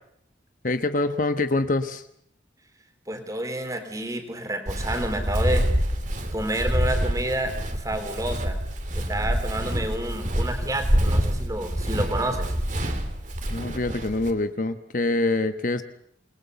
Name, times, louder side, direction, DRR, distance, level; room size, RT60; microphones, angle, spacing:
voice 1, 0.6-2.0 13.5-15.8, left 2 dB, 45° left, 9 dB, 1.2 m, -25 dB
voice 2, 3.1-5.7 6.3-8.6 8.9-12.5, right 1 dB, 20° right, 6 dB, 3.9 m, -29 dB
Walk footsteps, 4.7-14.3, equal, 40° right, 2.9 m, -26 dB
27.5 x 21.5 x 6.9 m, 0.69 s
head